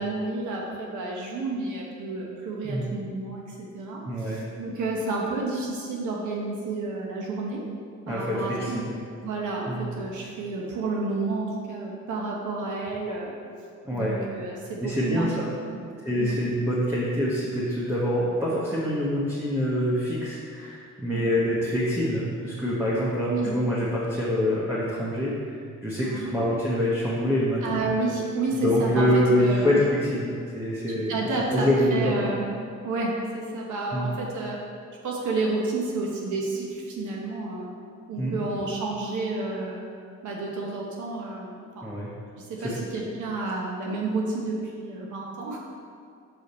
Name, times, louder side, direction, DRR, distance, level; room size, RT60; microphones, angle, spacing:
voice 1, 0.0-7.6 8.1-8.8 9.2-13.3 13.9-15.3 15.7-16.3 21.1-21.2 23.3-23.5 26.0-26.4 27.6-29.7 30.9-32.4 32.8-34.6 35.0-37.7 38.1-39.8 40.2-41.9 42.4-45.6, right 3 dB, 80° right, -2 dB, 1.1 m, -30 dB
voice 2, 4.0-4.4 8.1-8.9 9.7-9.9 13.8-14.1 14.8-15.5 16.0-25.3 25.8-27.8 28.6-31.1 31.5-32.3 33.9-34.1 38.2-38.4 41.8-42.1 42.6-42.7, equal, 10° right, -7 dB, 1.2 m, -25 dB
6.5 x 5.0 x 4.2 m, 2.4 s
cardioid pair, 90°, 30 cm